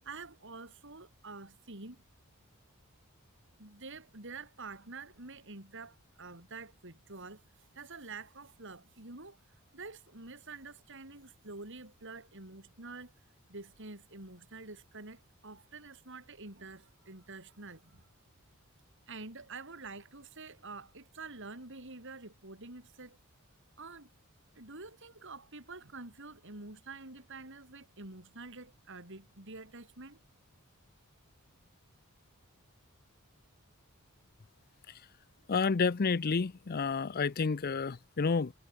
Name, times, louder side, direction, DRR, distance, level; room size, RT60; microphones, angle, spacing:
voice 1, 0.0-2.0 3.6-9.4 9.7-13.1 13.5-18.1 19.1-23.2 23.8-24.1 24.5-30.2, right 3 dB, 60° right, 4.8 m, -47 dB
voice 2, 35.5-38.5, left 5 dB, 45° left, 0.5 m, -30 dB
head